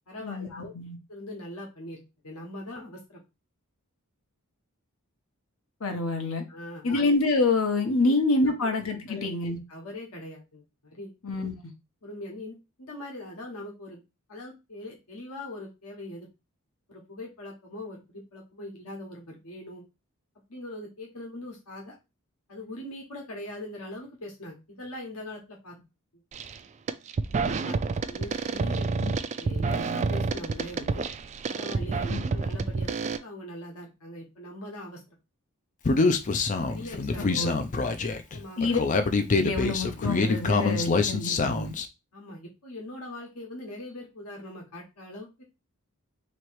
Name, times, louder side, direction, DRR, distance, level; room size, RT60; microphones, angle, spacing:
voice 1, 0.1-0.7 1.1-3.2 6.5-7.0 8.5-8.6 9.1-9.3 9.7-11.2 12.0-14.0 14.3-16.3 16.9-19.8 20.5-22.0 22.5-25.8 27.3-27.8 28.1-28.9 29.4-31.1 31.5-35.2 36.7-37.3 38.0-38.8 42.1-45.4, left 1 dB, 85° left, 1.3 m, -41 dB
voice 2, 5.8-6.4 6.8-9.6 11.2-11.7 29.0-29.1 32.1-32.2 37.2-37.5 38.6-38.8 39.4-41.8, left 3 dB, 65° left, 1.0 m, -27 dB
sound 1, 26.3-26.6 26.9-33.2, right 4 dB, 30° right, 0.3 m, -29 dB
Human voice, 35.8-41.8, left 3 dB, 35° left, 0.5 m, -25 dB
3.1 x 3.0 x 4.5 m
head